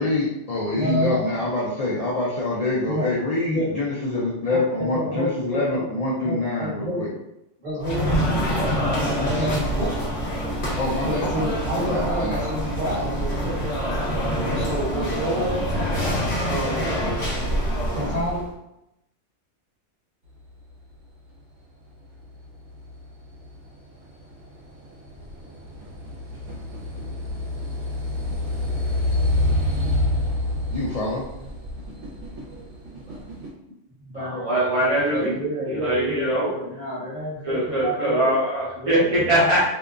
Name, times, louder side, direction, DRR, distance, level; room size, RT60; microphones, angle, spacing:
voice 1, 0.0-7.1 10.8-11.5 11.9-12.4 12.9-13.2 30.7-31.3, left 2 dB, 70° left, -5 dB, 0.3 m, -26 dB
voice 2, 0.7-1.2 2.9-3.1 3.5-3.7 4.5-5.9 6.2-7.0 7.6-8.4 8.8-10.0 10.9-14.1 14.6-15.6 16.4-16.9 17.9-18.4 33.1-33.2 34.0-34.5 35.1-38.3 38.7-39.5, equal, 40° right, -8 dB, 1.2 m, -29 dB
sound 1, 7.8-18.5, equal, 45° left, 1.0 m, -25 dB
sound 2, 22.1-33.5, left 1 dB, 75° right, 1.0 m, -28 dB
voice 3, 34.2-35.3 35.7-36.5 37.4-39.7, right 1 dB, 55° right, -7 dB, 0.3 m, -22 dB
2.7 x 2.2 x 2.3 m, 0.87 s
omnidirectional pair, 1.2 m